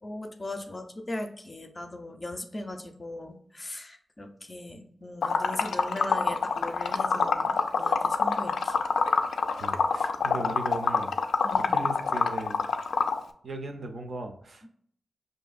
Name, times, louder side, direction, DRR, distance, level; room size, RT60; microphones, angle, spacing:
voice 1, 0.0-8.8 10.2-10.4 11.4-11.7, left 2 dB, 25° left, 5 dB, 0.5 m, -39 dB
Liquid, 5.2-13.2, left 5 dB, 90° left, 0.3 m, -25 dB
voice 2, 9.3-11.1 11.7-12.6 13.4-14.7, right 2 dB, 60° right, 6 dB, 0.5 m, -38 dB
5.8 x 2.6 x 2.4 m, 0.64 s
wide cardioid pair, 125°, 0 cm